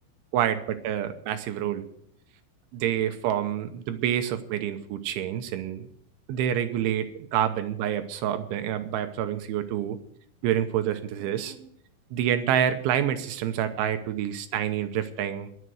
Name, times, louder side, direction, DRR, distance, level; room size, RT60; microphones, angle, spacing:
voice 1, 0.3-1.9 2.7-5.9 6.3-10.0 10.4-11.7 12.1-15.5, right 10 dB, 75° right, 8 dB, 3.1 m, -27 dB
21.0 x 8.0 x 6.3 m, 0.68 s
omnidirectional pair, 5.9 m